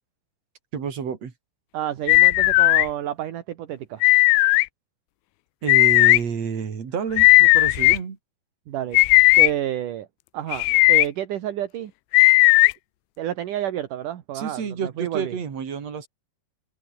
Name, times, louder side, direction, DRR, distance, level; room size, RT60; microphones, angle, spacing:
voice 1, 0.7-1.3 5.6-8.2 14.3-16.1, right 6 dB, 40° right, 3.8 m, -29 dB
voice 2, 1.7-4.0 8.7-9.0 9.4-10.1 10.3-11.9 13.2-14.7 15.0-15.3, right 11 dB, 60° right, 2.5 m, -29 dB
sound 1, 2.1-2.9 4.0-4.6 5.7-6.2 7.2-8.0 8.9-9.5 10.5-11.1 12.1-12.7, left 24 dB, 85° left, 2.4 m, -15 dB
omnidirectional pair, 5.2 m